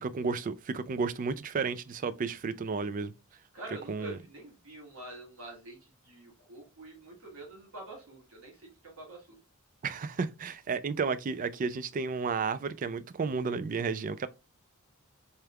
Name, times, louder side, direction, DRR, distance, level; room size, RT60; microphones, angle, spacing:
voice 1, 0.0-3.1 3.9-4.2 9.8-14.3, right 4 dB, 35° right, 0.3 m, -32 dB
voice 2, 3.5-9.4, right 2 dB, 75° right, 1.9 m, -46 dB
4.3 x 3.4 x 2.3 m
head